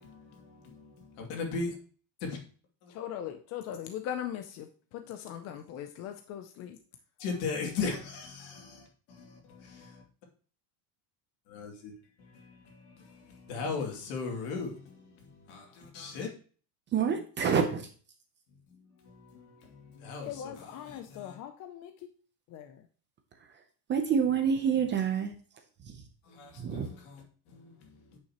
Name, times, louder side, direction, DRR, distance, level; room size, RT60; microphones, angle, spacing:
voice 1, 0.0-1.8 2.2-2.4 2.8-2.9 7.2-10.0 11.5-11.9 12.2-16.3 18.7-21.4 26.2-28.2, left 4 dB, 65° left, 2.7 m, -39 dB
voice 2, 2.9-4.7 4.9-6.8 20.2-21.9 22.5-22.8, left 10 dB, 35° left, 0.5 m, -40 dB
voice 3, 16.9-17.9 23.9-25.3 26.6-26.9, right 7 dB, 25° right, 0.6 m, -27 dB
9.7 x 5.7 x 2.9 m
cardioid pair, 170°, 48 cm